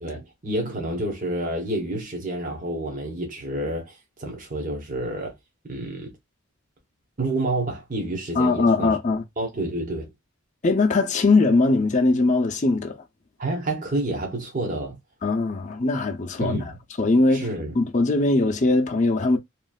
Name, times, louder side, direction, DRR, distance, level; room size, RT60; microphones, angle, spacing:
voice 1, 0.0-5.3 5.7-6.2 7.2-9.0 9.4-10.1 13.4-15.0 16.4-16.8 17.3-17.7, right 1 dB, 40° right, 1.0 m, -29 dB
voice 2, 8.4-9.2 10.6-13.0 15.2-16.7 17.0-17.5 17.7-19.4, left 3 dB, 35° left, 0.6 m, -20 dB
3.1 x 2.5 x 2.4 m
head